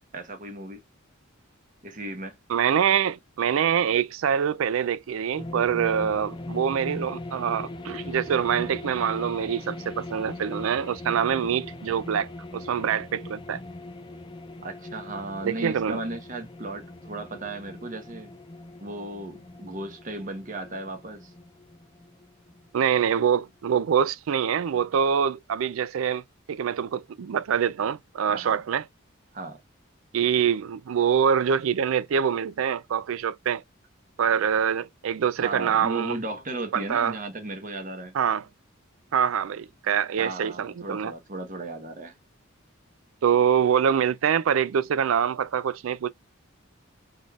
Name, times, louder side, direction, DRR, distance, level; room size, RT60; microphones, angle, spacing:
voice 1, 0.1-0.8 1.8-2.4 14.6-18.3 18.8-21.3 28.3-28.6 29.3-29.6 35.4-38.1 40.2-42.1, right 2 dB, 40° right, 1.1 m, -35 dB
voice 2, 2.5-13.6 15.4-16.0 22.7-26.2 26.5-28.8 30.1-33.6 34.2-36.2 36.7-37.2 38.1-38.4 39.1-41.1 43.2-46.1, right 8 dB, 80° right, 0.4 m, -25 dB
sound 1, 5.4-23.1, left 2 dB, 25° left, 0.4 m, -40 dB
4.2 x 3.3 x 2.3 m
head